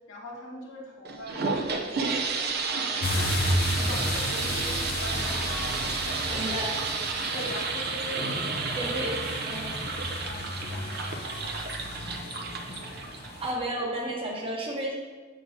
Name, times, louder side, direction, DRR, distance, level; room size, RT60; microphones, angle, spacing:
voice 1, 0.1-3.3 3.6-6.6 7.3-9.4 10.2-11.6, equal, 85° left, -4 dB, 1.1 m, -42 dB
sound 1, 1.0-13.6, right 4 dB, 55° right, 0.6 m, -31 dB
sound 2, 3.0-13.5, left 1 dB, 55° left, 0.6 m, -33 dB
voice 2, 6.3-6.8 8.8-9.2 9.4-9.7 13.4-14.9, right 1 dB, 30° right, -1 dB, 1.0 m, -32 dB
6.6 x 6.1 x 2.7 m, 1.4 s
head